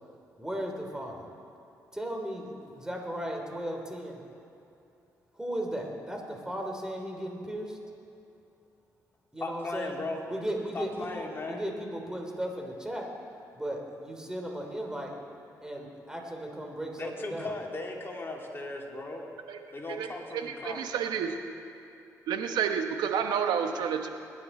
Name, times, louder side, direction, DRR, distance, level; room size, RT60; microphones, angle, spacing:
voice 1, 0.4-1.3 1.9-4.2 5.4-7.8 9.3-10.0 10.2-13.1 13.5-15.1 15.6-17.5, right 1 dB, 10° right, 1 dB, 3.0 m, -36 dB
voice 2, 9.4-10.2 10.7-11.6 17.0-19.3 19.7-21.2, left 2 dB, 35° left, 0 dB, 2.6 m, -37 dB
voice 3, 20.3-21.3 22.3-24.1, right 7 dB, 80° right, 6 dB, 1.2 m, -30 dB
21.5 x 10.0 x 4.4 m, 2.7 s
cardioid pair, 70°, 7 cm